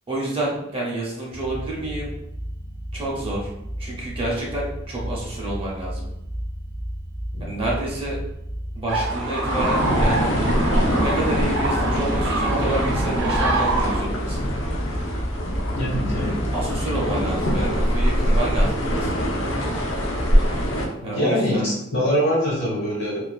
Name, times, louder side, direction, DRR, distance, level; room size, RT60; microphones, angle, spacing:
voice 1, 0.1-2.1 2.9-3.5 3.8-6.0 7.4-8.2 8.7-10.3 11.0-14.4 16.5-19.1 21.0-21.7, right 1 dB, 30° right, -4 dB, 0.6 m, -28 dB
sound 1, 1.3-18.3, equal, 25° left, 0.4 m, -33 dB
sound 2, 8.9-14.0, right 2 dB, 70° right, 0.6 m, -25 dB
sound 3, 9.5-20.9, equal, 80° left, 0.5 m, -23 dB
voice 2, 15.7-16.4 21.0-23.2, equal, 60° left, -5 dB, 1.1 m, -23 dB
2.3 x 2.3 x 2.3 m, 0.85 s
head